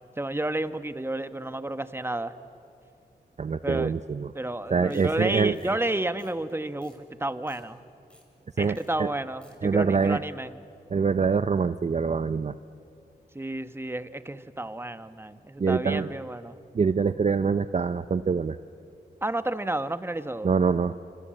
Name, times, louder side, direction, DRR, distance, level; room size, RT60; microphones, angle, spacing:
voice 1, 0.2-2.3 3.6-3.9 4.3-7.8 8.6-10.6 13.3-16.6 19.2-20.5, right 1 dB, 15° right, 11 dB, 1.2 m, -31 dB
voice 2, 3.4-4.3 4.7-5.8 8.6-9.1 9.6-10.2 10.9-12.5 15.6-16.1 16.7-18.6 20.4-21.0, right 5 dB, 40° right, 13 dB, 0.6 m, -25 dB
sound 1, 4.9-5.1 5.5-5.7 6.2-6.5 6.8-7.0 7.3-7.6 8.1-8.2 8.7-8.9 9.2-9.5, equal, 5° left, 6.7 m, -58 dB
26.0 x 26.0 x 7.8 m, 2.7 s
cardioid pair, 55°, 17 cm